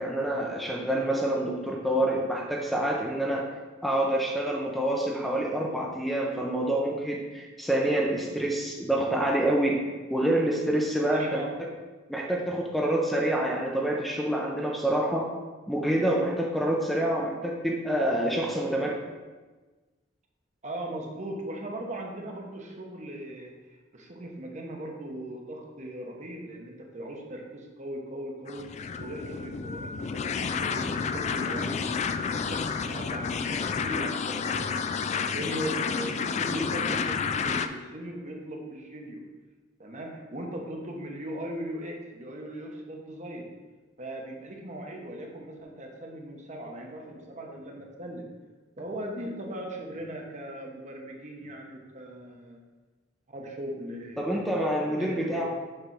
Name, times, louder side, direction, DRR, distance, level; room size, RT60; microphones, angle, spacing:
voice 1, 0.0-3.4 3.8-9.8 10.1-11.4 12.1-15.3 15.7-18.9 54.2-55.4, right 1 dB, ahead, -2 dB, 0.7 m, -27 dB
voice 2, 11.1-11.5 20.6-39.2 39.8-43.5 44.0-48.3 48.8-52.6 53.3-55.4, right 1 dB, 40° right, 0 dB, 1.1 m, -39 dB
sound 1, 28.5-37.7, left 5 dB, 35° left, 0.3 m, -30 dB
6.6 x 3.5 x 6.0 m, 1.3 s
head